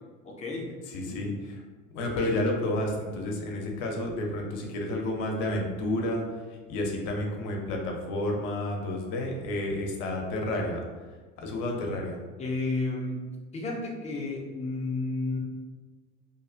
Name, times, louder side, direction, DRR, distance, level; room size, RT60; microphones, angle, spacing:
voice 1, 0.2-0.7 1.0-1.3 12.4-13.2 13.5-15.4, left 2 dB, 20° left, -2 dB, 0.5 m, -32 dB
voice 2, 0.9-1.6 1.9-6.2 6.7-10.8 11.4-12.2, left 1 dB, 55° left, 1 dB, 0.7 m, -30 dB
2.6 x 2.3 x 2.4 m, 1.4 s
hypercardioid pair, 75°, 39 cm